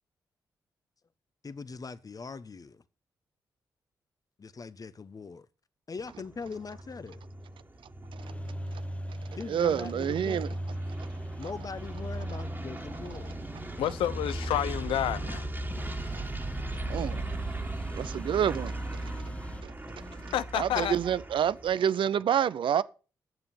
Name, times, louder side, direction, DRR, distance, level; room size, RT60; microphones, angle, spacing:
voice 1, 1.4-2.8 4.4-5.5 5.9-7.2 9.4-10.4 11.4-13.4, left 4 dB, 45° left, 1.0 m, -41 dB
sound 1, 6.1-21.7, right 1 dB, 25° right, 1.8 m, -37 dB
sound 2, 8.2-21.8, left 1 dB, 15° left, 0.9 m, -49 dB
voice 2, 9.5-10.5 16.9-17.2 17.9-18.7 19.0-19.1 19.6-19.7 20.5-22.8, right 9 dB, 70° right, 0.6 m, -27 dB
voice 3, 13.8-15.5 20.3-21.0, left 11 dB, 85° left, 0.6 m, -29 dB
9.7 x 7.0 x 6.0 m
supercardioid pair, 50°, 9 cm